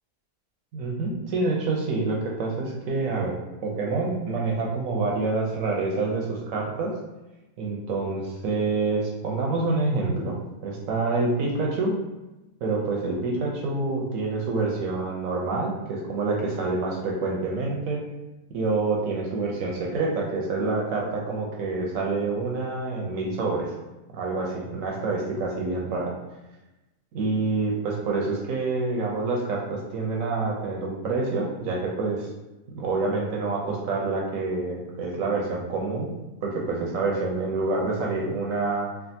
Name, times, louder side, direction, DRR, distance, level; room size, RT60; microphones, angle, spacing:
voice 1, 0.7-3.4 3.6-6.9 7.6-10.4 10.6-12.0 12.6-18.0 18.5-23.7 24.1-26.1 27.1-32.3 32.7-38.9, right 3 dB, 70° right, -2 dB, 0.9 m, -27 dB
3.3 x 2.3 x 2.6 m, 1.0 s
omnidirectional pair, 1.7 m